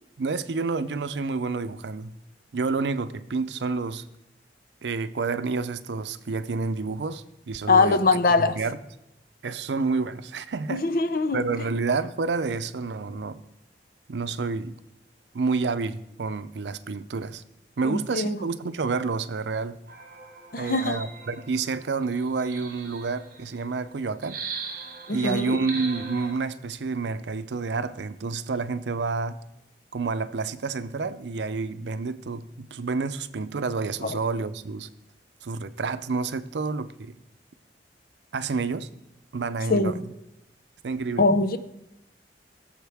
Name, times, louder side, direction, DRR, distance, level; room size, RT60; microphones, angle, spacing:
voice 1, 0.2-2.1 2.5-4.1 4.8-8.8 9.4-10.9 11.3-13.4 14.1-14.7 15.3-17.4 17.8-19.8 20.6-24.4 25.1-29.4 29.9-34.9 35.4-37.1 38.3-38.9 39.3-40.0 40.8-41.3, right 4 dB, 85° right, 0.5 m, -29 dB
voice 2, 7.7-8.6 10.7-11.4 17.8-18.4 20.5-21.0 25.1-25.6 34.0-34.2 39.7-40.0 41.2-41.6, left 3 dB, 55° left, 0.6 m, -22 dB
Guitar Metallic Granulated, 19.9-23.6 24.2-26.3, right 4 dB, 50° right, 1.4 m, -39 dB
17.0 x 7.2 x 3.5 m
head